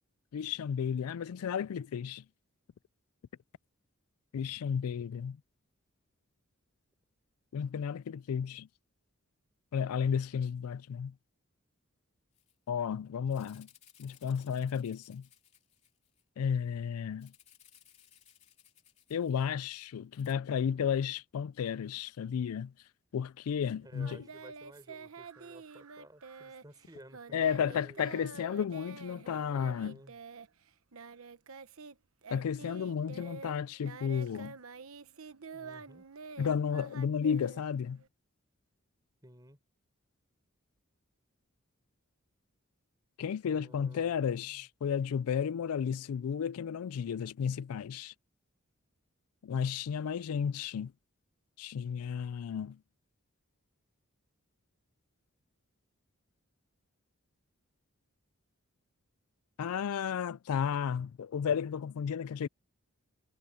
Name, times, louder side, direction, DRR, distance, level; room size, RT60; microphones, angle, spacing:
voice 1, 0.3-2.2 4.3-5.4 7.5-8.7 9.7-11.1 12.7-13.7 14.0-15.3 16.4-17.3 19.1-22.7 23.1-24.2 27.3-29.9 32.3-34.6 36.4-38.0 43.2-48.1 49.4-50.9 51.6-52.8 59.6-62.5, left 7 dB, 90° left, 0.4 m, -33 dB
Rattle (instrument), 12.3-12.5 12.8-12.9 13.3-16.2 17.2-19.7 20.1-20.3, left 9 dB, 30° left, 3.2 m, -62 dB
voice 2, 23.8-28.3 29.5-30.2 35.5-36.1 39.2-39.6 43.4-44.7, right 1 dB, 20° right, 4.1 m, -55 dB
Singing, 24.0-32.0 32.2-38.1, right 5 dB, 75° right, 1.0 m, -48 dB
head